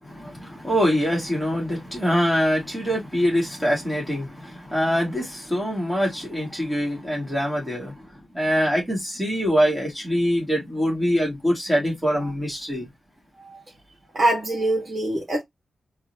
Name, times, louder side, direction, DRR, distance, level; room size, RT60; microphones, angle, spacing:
voice 1, 0.0-12.9, equal, 5° right, 2.5 m, -24 dB
voice 2, 14.1-15.4, right 1 dB, 30° right, 2.0 m, -23 dB
4.7 x 2.9 x 3.0 m
wide cardioid pair, 175°, 0 cm